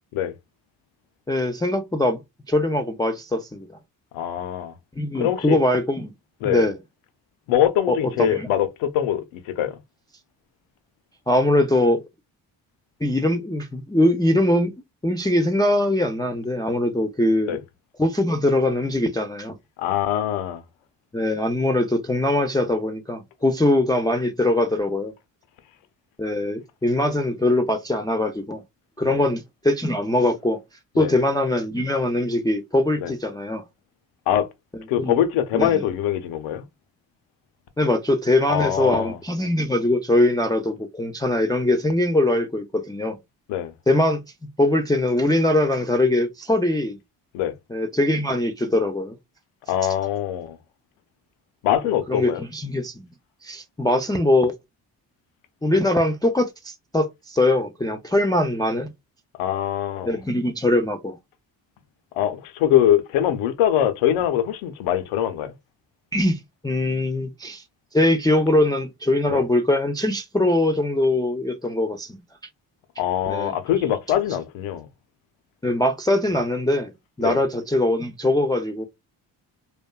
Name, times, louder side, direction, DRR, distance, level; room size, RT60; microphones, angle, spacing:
voice 1, 1.3-2.2 2.5-3.7 5.0-6.1 6.4-6.8 7.9-8.5 11.3-12.0 13.0-14.7 15.0-17.6 18.0-19.6 21.1-25.1 26.2-28.6 29.0-30.6 31.0-33.6 35.0-35.2 35.5-35.8 37.8-43.2 43.9-44.2 44.6-47.0 47.7-49.1 51.8-53.1 53.4-54.5 55.6-58.9 60.0-61.2 66.1-67.6 67.9-72.2 73.3-73.5 75.6-76.9 77.2-78.9, left 1 dB, 10° left, 0.4 m, -22 dB
voice 2, 4.1-4.7 5.1-5.6 6.4-6.7 7.5-9.8 17.5-17.6 19.8-20.6 29.0-29.2 31.0-31.1 33.0-33.1 34.3-34.5 34.9-36.6 38.5-39.2 43.5-43.7 47.3-47.5 49.7-50.6 51.6-52.4 59.4-60.2 62.2-65.5 69.3-69.4 73.0-74.9 77.2-77.4, left 11 dB, 85° left, 0.6 m, -23 dB
2.6 x 2.2 x 2.2 m
supercardioid pair, 50°, 48 cm